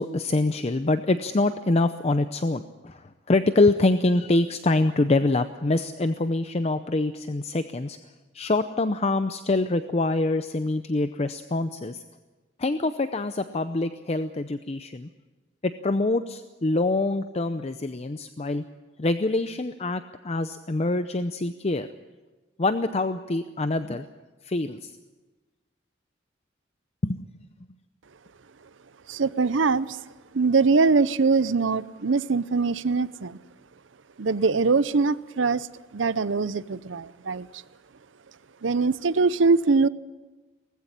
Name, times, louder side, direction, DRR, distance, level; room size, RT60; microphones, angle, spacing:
voice 1, 0.0-8.0 8.3-12.0 12.6-15.1 15.6-18.6 19.0-21.9 22.6-24.1 24.4-24.9 27.0-27.2, left 2 dB, 35° left, 10 dB, 0.6 m, -25 dB
voice 2, 29.1-30.0 30.3-33.4 34.2-37.6 38.6-39.9, right 4 dB, 75° right, 17 dB, 0.7 m, -23 dB
19.5 x 15.5 x 10.0 m, 1.2 s
head